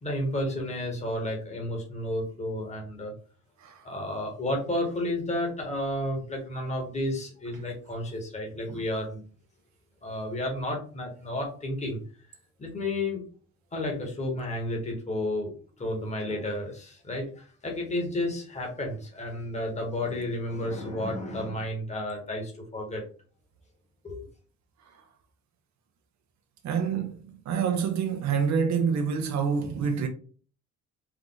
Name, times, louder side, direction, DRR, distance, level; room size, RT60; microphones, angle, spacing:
voice 1, 0.0-3.1 3.8-9.2 10.0-12.0 12.6-13.2 13.7-23.0 24.0-24.2, left 1 dB, 25° left, 1.5 m, -32 dB
voice 2, 26.6-27.1 27.5-30.1, right 6 dB, 70° right, 0.9 m, -26 dB
4.7 x 2.5 x 3.8 m
cardioid pair, 135°, 29 cm